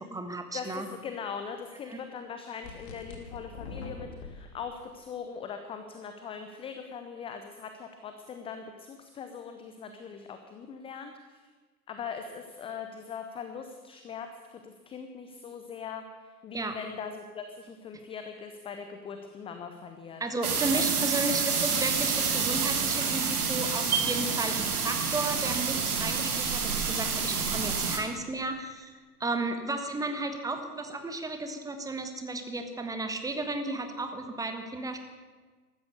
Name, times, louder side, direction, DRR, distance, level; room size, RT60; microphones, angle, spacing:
voice 1, 0.0-0.9 1.9-2.0 16.5-16.8 20.2-35.0, right 2 dB, 5° right, 6 dB, 1.4 m, -33 dB
voice 2, 0.5-11.4 11.9-20.8, left 6 dB, 10° left, 7 dB, 0.6 m, -41 dB
sound 1, 2.6-4.3, left 5 dB, 45° left, 2.9 m, -42 dB
sound 2, 20.4-28.0, right 6 dB, 65° right, 2.6 m, -28 dB
15.0 x 13.0 x 6.9 m, 1.4 s
figure-of-eight pair, 100°, 48 cm